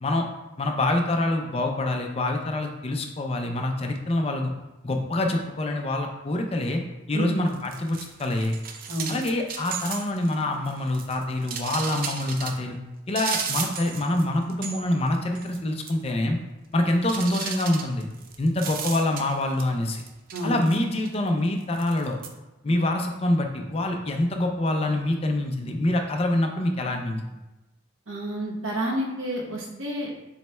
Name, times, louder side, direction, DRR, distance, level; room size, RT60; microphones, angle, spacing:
voice 1, 0.6-4.5 4.8-6.8 7.1-8.6 9.1-12.8 13.1-16.4 16.7-18.1 18.4-20.0 20.4-22.1 22.6-27.2, left 1 dB, 30° left, 3 dB, 0.4 m, -25 dB
sound 1, 7.5-10.3 10.7-12.6 13.1-14.2 14.5-15.1 15.3-15.6 15.9-16.0 17.1-19.6 19.9-21.1 21.8-22.3, right 6 dB, 45° right, 0.4 m, -34 dB
voice 2, 8.9-9.2 20.3-20.6 28.1-30.1, right 1 dB, 90° right, -1 dB, 0.9 m, -29 dB
7.0 x 3.1 x 2.2 m, 1.1 s
head